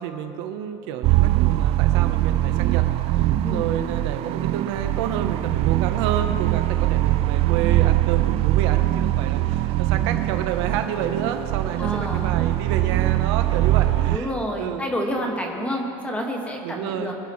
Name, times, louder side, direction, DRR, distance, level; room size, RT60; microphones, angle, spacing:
voice 1, 0.0-2.8 3.1-14.9 15.2-15.4 16.6-17.1, right 9 dB, 70° right, 7 dB, 1.0 m, -30 dB
sound 1, 1.0-14.2, right 15 dB, 40° right, 0.4 m, -22 dB
voice 2, 11.8-12.3 14.1-17.1, equal, 10° left, 0 dB, 1.8 m, -28 dB
24.5 x 11.0 x 3.2 m, 2.9 s
supercardioid pair, 145°, 15 cm